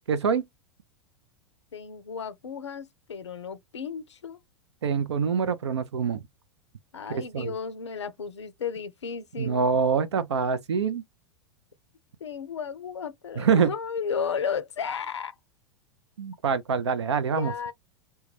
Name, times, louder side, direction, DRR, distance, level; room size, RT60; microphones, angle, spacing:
voice 1, 0.1-0.4 4.8-6.2 7.1-7.5 9.4-11.0 13.4-13.7 16.2-17.5, right 6 dB, 75° right, 0.4 m, -25 dB
voice 2, 1.7-4.4 6.9-9.7 12.2-15.3 17.4-17.7, left 6 dB, 80° left, 0.4 m, -34 dB
2.2 x 2.2 x 3.1 m
figure-of-eight pair, 90°, 14 cm